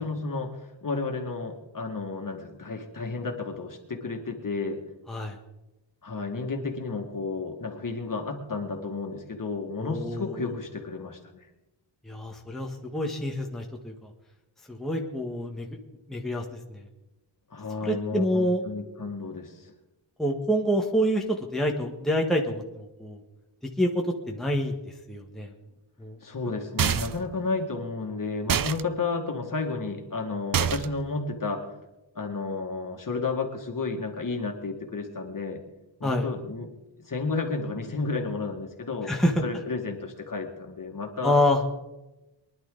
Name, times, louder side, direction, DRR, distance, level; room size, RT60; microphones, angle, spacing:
voice 1, 0.0-4.8 6.0-11.4 17.5-19.7 26.2-31.7 32.2-35.6 36.0-36.7 37.0-39.1 39.4-41.4, left 3 dB, 40° left, 3 dB, 2.1 m, -32 dB
voice 2, 9.8-10.4 12.0-13.9 14.7-15.7 16.1-16.4 16.7-16.8 17.8-18.6 20.2-23.2 23.8-24.7 25.1-25.5 26.0-26.2 36.0-36.3 39.0-39.4 41.2-41.6, equal, ahead, 0 dB, 1.5 m, -27 dB
sound 1, 26.8-27.3 28.5-28.8 30.5-31.0, right 9 dB, 45° right, 0.5 m, -26 dB
23.0 x 11.0 x 4.0 m, 1.0 s
wide cardioid pair, 115°, 50 cm